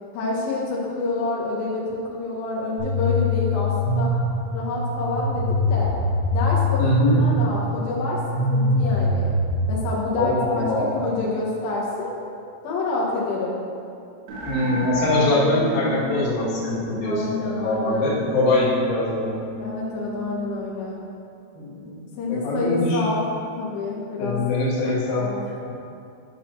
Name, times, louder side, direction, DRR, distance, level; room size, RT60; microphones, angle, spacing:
voice 1, 0.1-4.1 4.5-5.9 6.3-6.8 7.2-8.2 8.5-9.4 9.7-10.3 10.9-12.1 12.6-13.6 17.0-18.2 19.6-21.0 22.2-23.3 23.6-24.4 25.2-25.4, left 2 dB, 90° left, -5 dB, 2.0 m, -28 dB
sound 1, 2.8-9.6, left 1 dB, 65° right, 4.0 m, -23 dB
voice 2, 6.8-7.2 10.1-11.0 14.4-19.3 21.5-22.0 22.3-23.0 24.2-25.3, left 2 dB, 55° left, -8 dB, 2.5 m, -23 dB
sound 2, 14.3-20.6, equal, 85° right, 3.9 m, -33 dB
12.0 x 6.1 x 3.0 m, 2.6 s
omnidirectional pair, 5.8 m